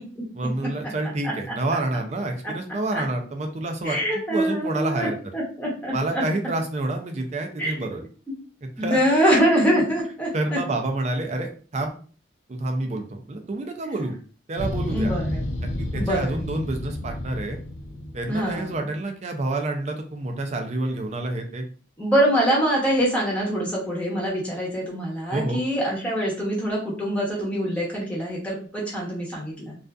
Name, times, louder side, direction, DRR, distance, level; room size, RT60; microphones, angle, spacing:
voice 1, 0.3-5.2 5.9-8.0 8.6-9.0 10.3-12.0 12.5-14.2 14.5-15.1 15.6-17.6 18.1-21.6 25.3-25.6, right 2 dB, 35° right, 4 dB, 0.4 m, -28 dB
voice 2, 1.2-1.5 2.9-3.0 3.8-5.1 5.3-6.2 7.6-7.9 8.8-10.6 14.9-15.4 15.9-16.4 18.3-18.9 22.0-29.8, equal, 5° left, -5 dB, 0.8 m, -24 dB
sound 1, 14.6-18.8, left 1 dB, 75° left, 0.4 m, -30 dB
2.4 x 2.4 x 2.2 m, 0.41 s
head